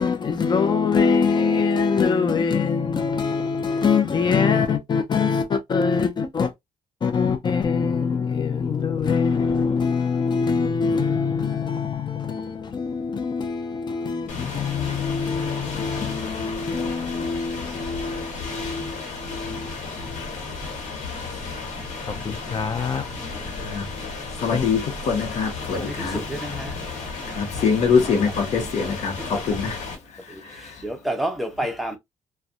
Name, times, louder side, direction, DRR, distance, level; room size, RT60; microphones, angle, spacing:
voice 1, 0.0-6.5 7.0-20.3 22.1-23.1 24.5-24.6, left 5 dB, 40° left, 0.5 m, -24 dB
sound 1, 14.3-30.0, left 4 dB, 85° left, 1.1 m, -33 dB
voice 2, 24.4-26.2 27.3-29.8 30.4-30.7, left 5 dB, 70° left, 0.8 m, -24 dB
voice 3, 25.8-26.7 27.3-27.4 28.0-28.1 29.2-29.5 30.3-30.4 30.8-32.0, right 1 dB, ahead, 0.7 m, -30 dB
2.6 x 2.2 x 2.4 m
cardioid pair, 110°, 12 cm